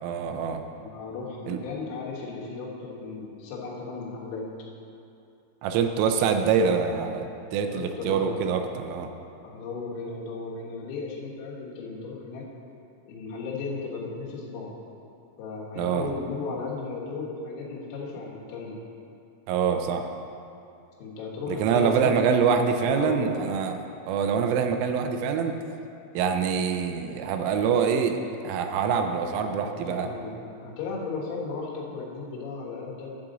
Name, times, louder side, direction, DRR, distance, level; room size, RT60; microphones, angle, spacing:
voice 1, 0.0-0.6 1.5-1.6 5.6-9.1 15.8-16.1 19.5-20.1 21.5-25.6 26.2-28.2 28.4-30.1, right 6 dB, 85° right, 6 dB, 3.2 m, -25 dB
voice 2, 0.8-4.5 7.4-8.4 9.4-12.5 13.1-14.8 15.4-18.8 21.0-23.3 29.5-33.3, left 4 dB, 90° left, -4 dB, 4.1 m, -35 dB
11.5 x 7.5 x 3.9 m, 2.6 s
omnidirectional pair, 5.8 m